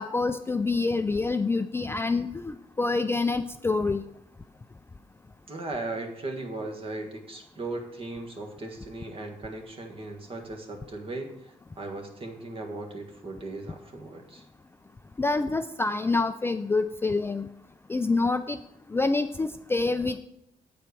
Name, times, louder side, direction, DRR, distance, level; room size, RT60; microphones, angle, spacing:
voice 1, 0.0-4.0 15.2-17.5 17.9-18.6 18.9-20.2, left 3 dB, 15° left, 9 dB, 0.3 m, -26 dB
voice 2, 5.5-14.4, right 2 dB, 40° right, 3 dB, 1.6 m, -37 dB
8.6 x 4.4 x 6.8 m, 0.80 s
cardioid pair, 115°, 15 cm